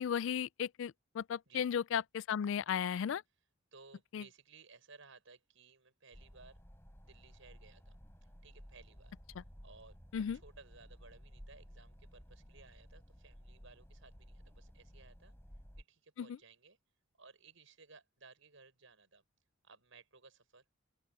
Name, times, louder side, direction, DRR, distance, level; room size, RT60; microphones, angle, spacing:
voice 1, 0.0-3.2 4.1-4.2 10.1-10.4, left 8 dB, 65° left, 0.3 m, -35 dB
voice 2, 3.7-6.6 7.0-8.0 8.2-9.1 9.6-10.0 10.3-15.3 15.8-16.8 17.2-19.2 19.6-20.6, right 4 dB, 70° right, 5.7 m, -60 dB
sound 1, 6.1-15.8, equal, 10° left, 5.3 m, -56 dB
open air
head